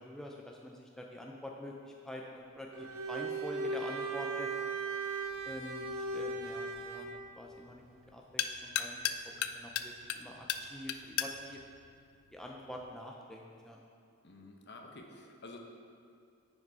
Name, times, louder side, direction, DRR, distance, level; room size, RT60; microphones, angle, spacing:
voice 1, 0.0-4.5 5.4-11.6 12.3-13.8, left 1 dB, ahead, -1 dB, 0.5 m, -46 dB
Bowed string instrument, 2.7-7.2, right 3 dB, 70° right, 0.6 m, -37 dB
sound 1, 5.3-12.9, left 9 dB, 75° left, 0.4 m, -40 dB
voice 2, 14.2-15.6, left 2 dB, 50° left, 2 dB, 0.8 m, -50 dB
9.7 x 5.0 x 4.7 m, 2.4 s
head